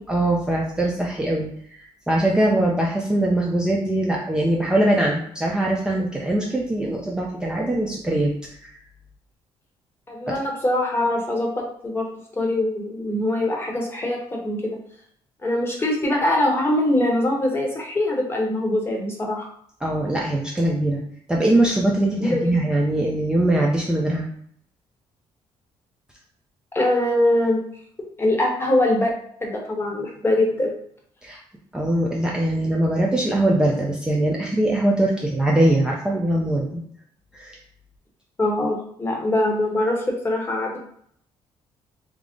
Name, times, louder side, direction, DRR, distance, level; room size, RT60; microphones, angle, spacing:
voice 1, 0.1-1.5 1.8-8.3 8.6-8.7 10.3-10.4 19.8-21.0 21.3-24.3 31.2-31.4 31.7-36.8 37.3-37.6, right 1 dB, 10° right, -3 dB, 0.5 m, -22 dB
voice 2, 10.1-12.1 12.4-14.8 15.4-19.5 22.2-22.7 26.7-27.6 28.2-29.1 29.4-30.7 38.4-40.8, left 1 dB, 20° left, 0 dB, 0.9 m, -23 dB
3.6 x 2.0 x 3.7 m, 0.66 s
cardioid pair, 125°, 11 cm